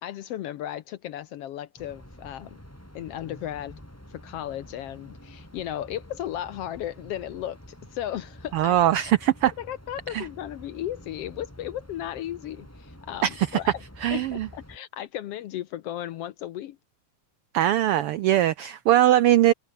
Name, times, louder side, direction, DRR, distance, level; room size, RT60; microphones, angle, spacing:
voice 1, 0.0-2.6 2.9-3.8 4.1-8.9 9.6-13.7 14.1-16.8, left 12 dB, 70° left, 1.5 m, -35 dB
sound 1, 1.8-14.8, equal, 5° left, 6.0 m, -48 dB
voice 2, 8.5-9.5 10.1-10.3 13.2-13.6 14.0-14.5 17.5-19.5, right 13 dB, 90° right, 1.2 m, -21 dB
omnidirectional pair, 3.4 m